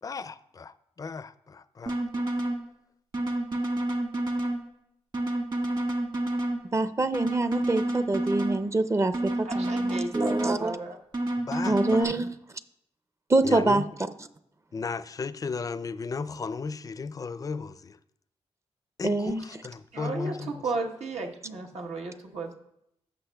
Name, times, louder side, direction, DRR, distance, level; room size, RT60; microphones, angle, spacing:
voice 1, 0.0-2.3 11.4-12.1 13.4-13.9 14.7-18.0 19.0-20.6, left 4 dB, 35° left, 0.4 m, -35 dB
sound 1, 1.9-2.6 3.1-4.6 5.1-6.6 7.1-8.6 9.1-10.6 11.1-12.0, right 1 dB, 45° right, 1.5 m, -29 dB
voice 2, 6.7-10.7 11.7-12.3 13.3-13.8 19.0-19.4, right 2 dB, 25° right, 0.5 m, -25 dB
voice 3, 9.4-11.0 19.9-22.5, right 3 dB, 85° right, 1.1 m, -34 dB
15.5 x 6.2 x 2.3 m
cardioid pair, 70°, 11 cm